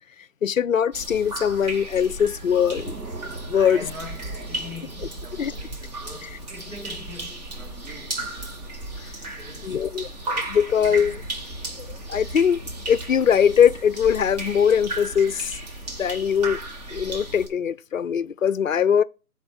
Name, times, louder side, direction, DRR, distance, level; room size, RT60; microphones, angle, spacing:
voice 1, 0.4-2.9 3.5-3.8 5.4-5.5 9.6-11.1 11.8-12.6 12.9-15.5 16.0-16.6 16.9-19.0, left 8 dB, 60° left, 0.5 m, -21 dB
sound 1, 0.9-17.5, right 2 dB, 25° right, 1.4 m, -35 dB
Thunder / Rain, 1.3-17.3, right 3 dB, 80° right, 1.9 m, -46 dB
voice 2, 3.5-8.6 9.2-9.9 10.8-11.3, left 1 dB, 55° right, 3.1 m, -42 dB
11.0 x 4.3 x 5.8 m
figure-of-eight pair, 155°, 47 cm